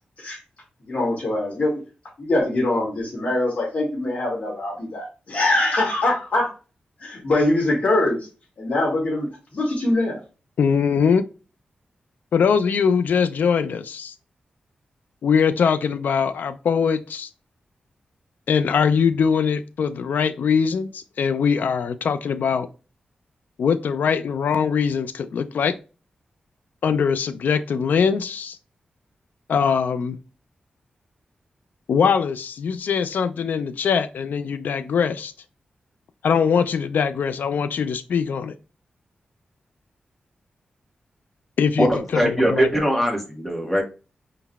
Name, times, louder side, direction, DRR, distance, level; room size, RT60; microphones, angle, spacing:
voice 1, 0.9-1.8 2.2-6.5 7.0-8.3 8.6-10.2, left 2 dB, 55° left, -4 dB, 2.3 m, -23 dB
voice 2, 10.6-11.2 12.3-14.1 15.2-17.3 18.5-22.7 23.6-25.7 26.8-28.6 29.5-30.2 31.9-35.3 36.2-38.5 41.6-42.7, left 6 dB, 85° left, 11 dB, 0.4 m, -22 dB
voice 3, 41.8-43.8, equal, 5° left, 1 dB, 1.4 m, -21 dB
5.2 x 3.8 x 2.3 m, 0.33 s
wide cardioid pair, 105°, 3 cm